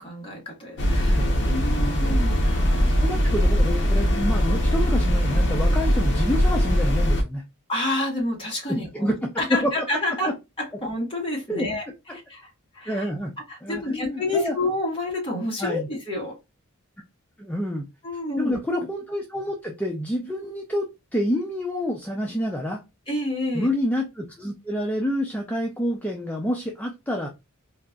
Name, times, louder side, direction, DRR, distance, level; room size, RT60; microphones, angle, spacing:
voice 1, 0.0-1.2 1.5-2.9 7.7-10.3 10.6-11.8 12.3-12.5 12.7-13.0 13.5-16.3 18.0-18.6 23.1-23.7, left 2 dB, 25° left, 1.3 m, -28 dB
sound 1, 0.8-7.2, equal, 55° left, 0.7 m, -21 dB
voice 2, 1.1-1.9 2.8-7.4 8.9-9.7 11.5-11.7 12.1-12.2 12.9-13.3 13.6-14.6 15.6-15.9 17.4-17.9 18.4-22.8 23.5-27.3, equal, 5° left, 0.4 m, -28 dB
3.9 x 2.4 x 2.3 m
head